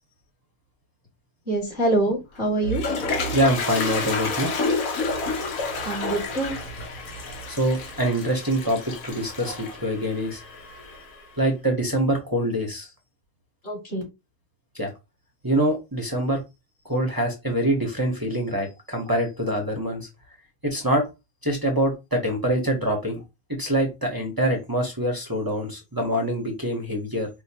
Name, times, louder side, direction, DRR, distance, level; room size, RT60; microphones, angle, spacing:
voice 1, 1.5-2.8 5.8-6.6 13.6-14.0, right 2 dB, 50° left, -2 dB, 2.3 m, -25 dB
Toilet flush, 2.4-11.2, left 3 dB, 75° left, 1.4 m, -30 dB
voice 2, 3.3-4.5 7.5-10.4 11.4-12.9 14.7-14.9 15.4-16.4 16.8-20.1 20.6-21.1 21.4-23.2 23.5-27.3, right 1 dB, 20° right, 0 dB, 0.7 m, -25 dB
4.9 x 2.2 x 2.8 m, 0.24 s
omnidirectional pair, 1.5 m